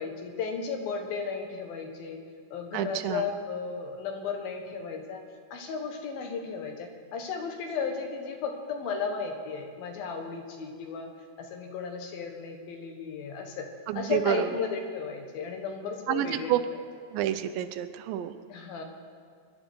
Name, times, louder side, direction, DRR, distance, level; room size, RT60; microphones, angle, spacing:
voice 1, 0.0-2.2 2.5-5.2 5.5-11.1 11.4-13.7 13.9-16.5 18.5-18.8, left 5 dB, 80° left, 3 dB, 3.3 m, -34 dB
voice 2, 2.7-3.3 13.9-14.5 16.1-16.6 17.1-18.3, right 12 dB, 80° right, 11 dB, 2.3 m, -29 dB
23.5 x 11.5 x 4.6 m, 2.1 s
omnidirectional pair, 4.2 m